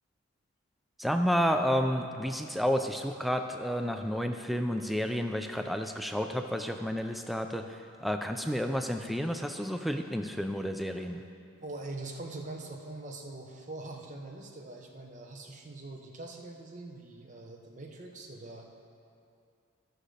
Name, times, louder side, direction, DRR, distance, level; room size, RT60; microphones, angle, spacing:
voice 1, 1.0-11.2, equal, ahead, 6 dB, 0.3 m, -31 dB
voice 2, 11.6-18.6, right 2 dB, 35° right, 2 dB, 0.8 m, -43 dB
15.5 x 6.2 x 3.3 m, 2.5 s
head